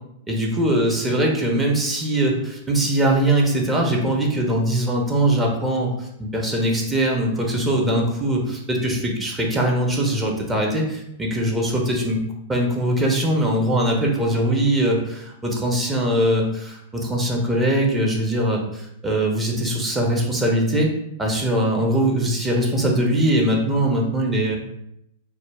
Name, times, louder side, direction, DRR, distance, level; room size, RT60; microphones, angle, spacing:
voice 1, 0.3-12.2 12.5-20.9 21.2-24.6, right 1 dB, 15° right, -1 dB, 0.6 m, -21 dB
2.3 x 2.0 x 3.3 m, 0.79 s
figure-of-eight pair, 100°, 0 cm